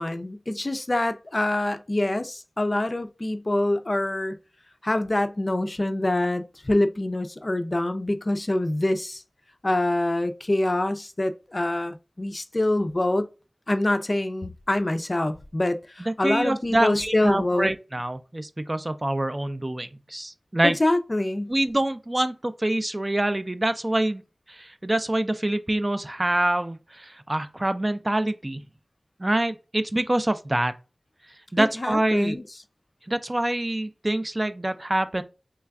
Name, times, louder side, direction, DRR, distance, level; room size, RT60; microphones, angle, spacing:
voice 1, 0.0-4.4 4.8-9.2 9.6-13.3 13.7-17.7 20.6-21.5 31.6-32.4, left 1 dB, 40° left, 0.4 m, -25 dB
voice 2, 16.0-20.8 21.5-24.2 24.5-28.6 29.2-30.7 31.5-32.4 33.1-35.2, right 1 dB, 30° right, 0.3 m, -25 dB
3.2 x 2.3 x 3.4 m
wide cardioid pair, 50°, 0 cm